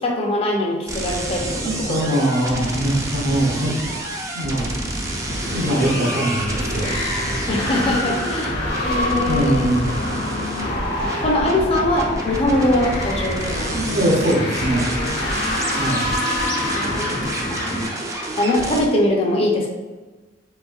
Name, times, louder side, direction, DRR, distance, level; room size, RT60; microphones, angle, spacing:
voice 1, 0.0-2.1 7.5-8.6 8.8-9.7 11.0-13.8 15.5-15.6 16.6-17.1 17.5-17.7 18.2-19.7, left 1 dB, 30° left, -2 dB, 0.6 m, -22 dB
sound 1, 0.9-18.8, right 1 dB, 15° right, 0.4 m, -29 dB
voice 2, 1.6-3.7 4.3-4.8 5.5-7.0 9.3-9.8 13.7-14.9 15.8-16.1, right 1 dB, 60° right, -5 dB, 0.7 m, -22 dB
sound 2, 5.0-17.9, left 1 dB, 60° left, 1.0 m, -27 dB
4.0 x 3.1 x 2.3 m, 1.2 s
head